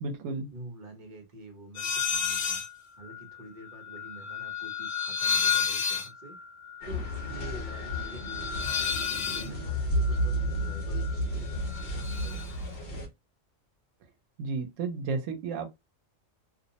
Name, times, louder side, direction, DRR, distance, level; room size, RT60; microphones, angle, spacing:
voice 1, 0.0-0.5 14.4-15.7, right 4 dB, 80° right, 1.0 m, -32 dB
voice 2, 0.5-2.6 3.0-6.4 6.8-12.9, right 2 dB, 40° right, 0.9 m, -47 dB
sound 1, 1.7-2.7 3.0-11.2 11.5-12.5, left 7 dB, 75° left, 1.0 m, -32 dB
sound 2, 6.8-13.1, equal, 50° left, 0.9 m, -32 dB
2.6 x 2.0 x 2.7 m
omnidirectional pair, 1.3 m